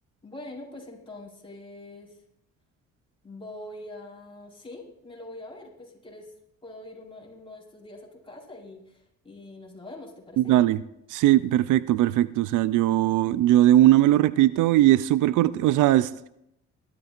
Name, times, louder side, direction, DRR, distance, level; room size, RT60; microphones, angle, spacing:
voice 1, 0.2-2.2 3.2-6.3 6.6-10.5, left 2 dB, 20° left, 4.5 m, -44 dB
voice 2, 10.4-10.8 11.1-16.1, right 14 dB, 80° right, 0.5 m, -19 dB
20.5 x 12.0 x 2.5 m
cardioid pair, 90°, 30 cm